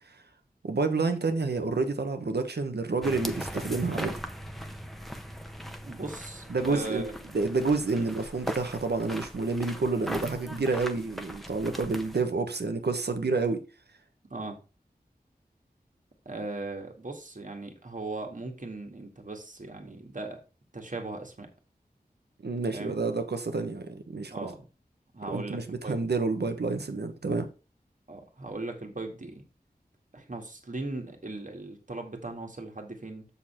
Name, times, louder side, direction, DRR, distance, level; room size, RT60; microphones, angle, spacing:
voice 1, 0.6-4.2 6.5-13.6 22.4-24.3 25.3-27.5, right 3 dB, 85° right, 1.2 m, -29 dB
sound 1, 3.0-12.2, equal, ahead, 1.1 m, -39 dB
voice 2, 5.8-7.0 7.9-8.1 14.3-14.6 16.3-20.4 20.7-21.5 22.7-22.9 24.3-24.6 25.1-26.0 28.1-29.4 30.1-33.3, right 2 dB, 50° right, 1.9 m, -38 dB
7.0 x 6.6 x 4.4 m
wide cardioid pair, 45°, 17 cm